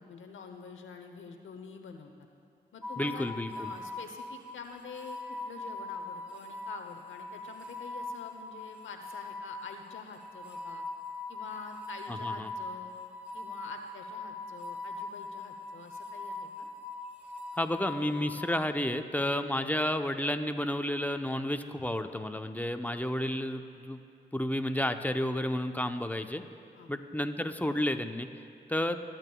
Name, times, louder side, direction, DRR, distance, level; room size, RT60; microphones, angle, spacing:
voice 1, 0.0-2.1 2.7-3.3 3.5-10.8 11.3-12.9 13.3-16.7 26.7-26.9 28.8-29.0, left 5 dB, 80° left, 5 dB, 0.8 m, -47 dB
sound 1, 2.8-18.5, left 2 dB, 5° right, 2.2 m, -41 dB
voice 2, 3.0-3.7 12.1-12.5 17.6-24.0 24.3-26.4 26.9-28.3 28.7-29.0, left 1 dB, 10° left, 7 dB, 0.7 m, -31 dB
19.5 x 8.9 x 2.3 m, 2.7 s
supercardioid pair, 40°, 20 cm